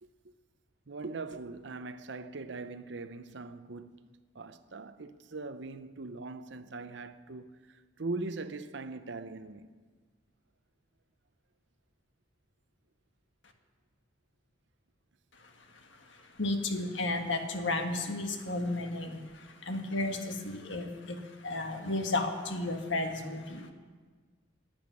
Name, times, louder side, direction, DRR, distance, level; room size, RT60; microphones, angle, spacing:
voice 1, 0.0-0.3 0.9-4.1 4.3-9.7, right 3 dB, 65° right, 0.8 m, -41 dB
voice 2, 16.4-23.7, left 2 dB, 70° left, 1.7 m, -33 dB
11.0 x 10.5 x 9.6 m
head